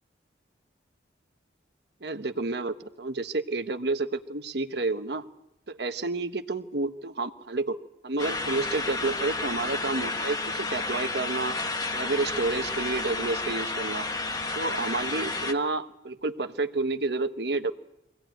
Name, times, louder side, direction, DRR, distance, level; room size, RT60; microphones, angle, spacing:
voice 1, 2.0-5.2 5.7-7.8 8.0-11.5 11.9-14.1 14.5-17.7, right 3 dB, 65° right, 9 dB, 1.2 m, -30 dB
sound 1, 8.2-15.5, left 3 dB, 20° left, 1.1 m, -31 dB
24.5 x 17.5 x 9.2 m, 0.92 s
head